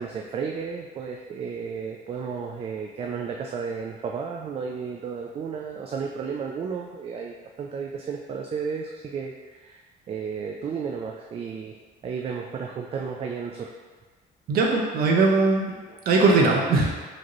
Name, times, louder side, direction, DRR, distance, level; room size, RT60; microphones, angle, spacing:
voice 1, 0.0-11.8 12.0-13.7 15.9-16.0, right 6 dB, 35° right, 1 dB, 0.4 m, -33 dB
voice 2, 14.5-15.7 16.1-16.9, right 3 dB, 65° right, 0 dB, 0.9 m, -20 dB
5.0 x 2.8 x 3.0 m, 1.4 s
cardioid pair, 110°, 17 cm